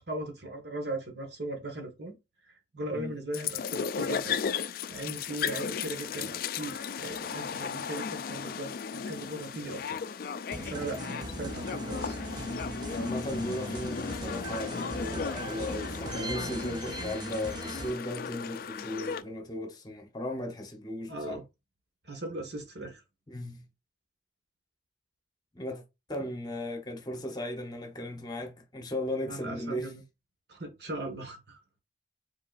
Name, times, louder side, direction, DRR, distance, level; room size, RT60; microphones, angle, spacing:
voice 1, 0.1-2.2 2.4-4.3 4.9-10.0 10.6-12.2 21.1-21.4 22.0-23.0 26.2-26.3 29.3-30.0 30.5-31.6, right 2 dB, 60° right, 1.5 m, -38 dB
sound 1, 3.3-19.2, left 6 dB, 50° left, 0.3 m, -35 dB
sound 2, 10.5-17.9, right 2 dB, 25° right, 0.4 m, -40 dB
voice 2, 12.9-21.4 23.3-23.6 25.5-25.8 26.1-30.0, left 1 dB, 20° left, 1.0 m, -36 dB
5.2 x 4.0 x 2.5 m
head